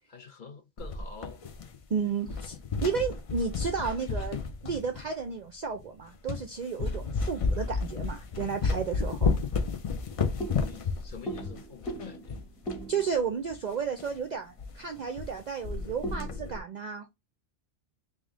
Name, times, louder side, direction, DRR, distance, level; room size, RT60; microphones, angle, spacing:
voice 1, 0.1-1.5 10.6-12.4, left 5 dB, 50° left, 0.8 m, -47 dB
sound 1, 0.8-1.9 2.2-5.2 5.8-5.9 6.3-6.5 6.8-12.9 13.1-13.2 13.5-13.6 14.0-14.2 14.6-14.7 15.0-15.4 15.6-16.6, left 4 dB, 65° left, 0.3 m, -32 dB
voice 2, 1.9-4.4 4.6-9.4 12.9-17.1, right 6 dB, 60° right, 0.4 m, -33 dB
sound 2, 8.7-16.4, right 2 dB, ahead, 0.8 m, -43 dB
3.5 x 2.5 x 3.6 m
omnidirectional pair, 1.2 m